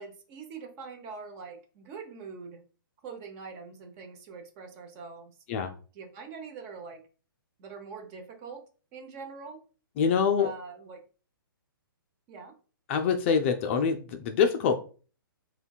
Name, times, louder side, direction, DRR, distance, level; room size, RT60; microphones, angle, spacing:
voice 1, 0.0-2.6 3.0-5.3 5.9-7.0 7.6-8.6 8.9-9.6 10.4-11.0 12.3-12.5, right 5 dB, 30° right, 4 dB, 0.6 m, -43 dB
voice 2, 10.0-10.5 12.9-14.8, left 6 dB, 35° left, 5 dB, 0.3 m, -25 dB
3.7 x 2.2 x 2.2 m, 0.37 s
hypercardioid pair, 140°, 12 cm